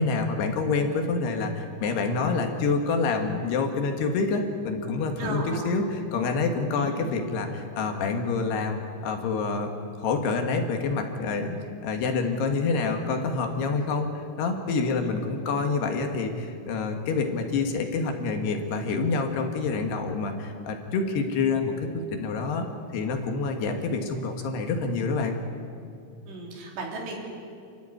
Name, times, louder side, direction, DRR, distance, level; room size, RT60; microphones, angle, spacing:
voice 1, 0.0-9.7 10.0-11.6 11.8-22.7 22.9-25.4, left 4 dB, 65° left, 4 dB, 3.4 m, -27 dB
voice 2, 5.2-5.7 6.7-6.9 26.3-27.2, right 3 dB, 65° right, -1 dB, 5.6 m, -35 dB
29.0 x 13.5 x 10.0 m, 2.5 s
omnidirectional pair, 5.6 m